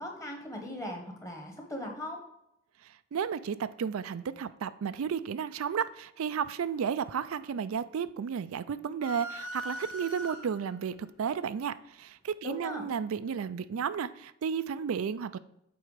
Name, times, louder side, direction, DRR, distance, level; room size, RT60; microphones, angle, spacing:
voice 1, 0.0-2.2 12.4-12.9, left 1 dB, 15° left, 2 dB, 1.3 m, -39 dB
voice 2, 3.1-15.4, right 7 dB, 90° right, 14 dB, 0.4 m, -33 dB
sound 1, 9.0-10.8, equal, 90° left, 1.4 m, -40 dB
7.9 x 4.3 x 5.0 m, 0.79 s
head